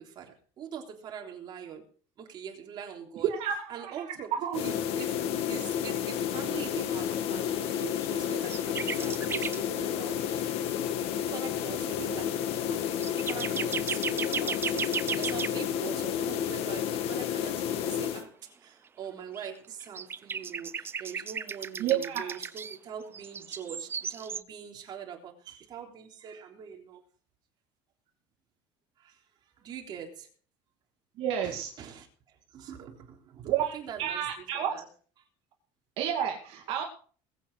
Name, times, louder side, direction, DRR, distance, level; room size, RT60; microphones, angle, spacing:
voice 1, 0.0-1.8 2.2-3.3 3.7-5.1 5.5-10.6 11.1-18.3 18.6-27.0 29.0-29.2 29.6-30.3 31.4-34.9, right 8 dB, 40° right, 1 dB, 3.6 m, -43 dB
voice 2, 3.3-3.9 4.3-4.6 21.8-22.4 31.2-31.7 33.4-34.7 36.0-36.8, right 9 dB, 60° right, 1 dB, 2.5 m, -30 dB
sound 1, 4.5-18.3, left 9 dB, 60° left, 1.7 m, -31 dB
sound 2, 7.4-8.1 8.5-9.6 10.8-11.0 12.0-12.1 12.5-15.5 19.3-19.5 19.7-22.8 23.1-24.4, right 6 dB, 20° right, 0.5 m, -35 dB
21.0 x 8.4 x 4.9 m, 0.43 s
cardioid pair, 160°, 12 cm